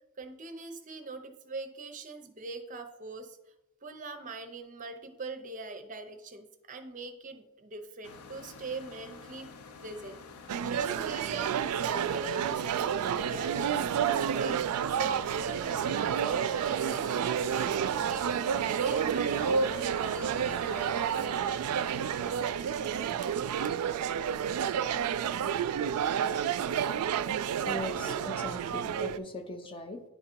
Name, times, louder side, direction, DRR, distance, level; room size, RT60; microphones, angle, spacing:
voice 1, 0.2-3.4 3.8-9.5 9.8-11.5 11.9-12.9 13.2-14.6 15.0-21.1 23.6-23.7, right 3 dB, 35° right, 7 dB, 0.6 m, -42 dB
sound 1, 8.0-23.6, left 4 dB, 90° left, 0.6 m, -48 dB
sound 2, 10.5-29.2, right 8 dB, 90° right, 0.3 m, -30 dB
voice 2, 27.3-30.0, left 1 dB, 25° left, 5 dB, 0.6 m, -39 dB
10.0 x 3.7 x 4.4 m, 0.90 s
head